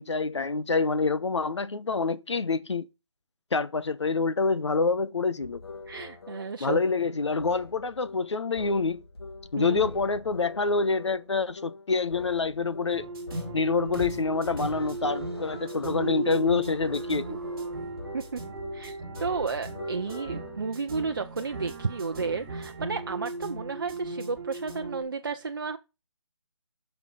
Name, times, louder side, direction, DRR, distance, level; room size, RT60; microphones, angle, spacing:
voice 1, 0.0-2.9 3.5-5.6 6.6-9.0 9.5-13.1 13.5-17.4, left 4 dB, 70° left, 1.1 m, -27 dB
sound 1, 5.4-20.6, left 3 dB, 55° left, 1.9 m, -44 dB
voice 2, 5.9-6.8 9.6-9.9 18.1-18.4 18.7-25.8, right 4 dB, 50° right, 0.7 m, -32 dB
sound 2, 12.9-25.0, right 2 dB, 10° right, 2.3 m, -37 dB
10.5 x 5.9 x 5.5 m
hypercardioid pair, 180°, 15 cm